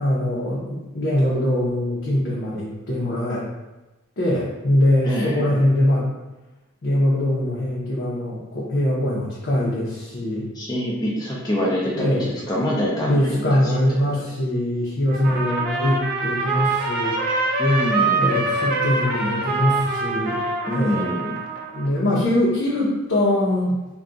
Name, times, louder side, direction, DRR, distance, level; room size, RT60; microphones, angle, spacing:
voice 1, 0.0-3.5 4.2-6.1 6.8-10.5 11.9-12.3 13.0-17.2 18.2-20.4 20.7-21.1 21.7-23.8, left 1 dB, 55° left, -8 dB, 0.7 m, -22 dB
voice 2, 5.0-5.5 10.5-13.6 17.6-18.2 20.7-21.4, left 1 dB, 20° left, -6 dB, 0.4 m, -25 dB
Trumpet, 15.1-21.9, right 3 dB, 45° right, 0.4 m, -24 dB
2.3 x 2.3 x 3.8 m, 1.1 s
head